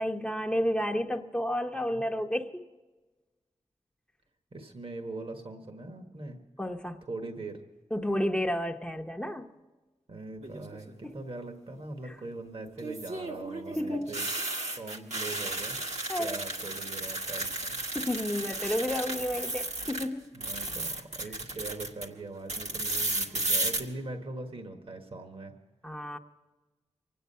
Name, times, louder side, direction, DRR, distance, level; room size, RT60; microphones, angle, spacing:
voice 1, 0.0-2.5 6.6-7.0 7.9-9.5 11.0-11.2 12.1-12.2 13.7-14.2 16.1-16.4 17.9-20.3 25.8-26.2, equal, 10° left, 3 dB, 0.8 m, -31 dB
voice 2, 1.7-2.0 4.5-6.4 7.0-7.6 10.1-15.8 16.2-17.8 20.3-25.5, right 2 dB, 55° right, 5 dB, 1.5 m, -41 dB
sound 1, 10.4-10.9 12.8-20.1 20.3-22.1 22.5-23.8, right 2 dB, 85° right, 1.7 m, -33 dB
24.5 x 9.4 x 5.5 m, 1.2 s
wide cardioid pair, 70°, 11 cm